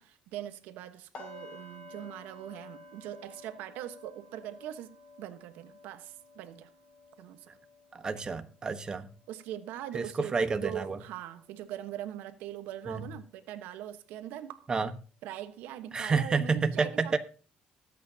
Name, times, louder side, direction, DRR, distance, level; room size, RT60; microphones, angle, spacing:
voice 1, 0.0-6.7 7.2-7.6 8.1-8.2 9.3-10.3 10.6-14.7 15.2-17.2, right 12 dB, 90° right, 1.2 m, -41 dB
sound 1, 1.1-11.1 11.4-11.7 12.1-12.3, left 2 dB, 35° left, 5.9 m, -53 dB
voice 2, 7.9-9.1 9.9-11.0 12.9-13.1 14.7-14.9 15.9-17.2, right 4 dB, 25° right, 1.2 m, -29 dB
20.0 x 8.5 x 2.8 m
cardioid pair, 125°, 3 cm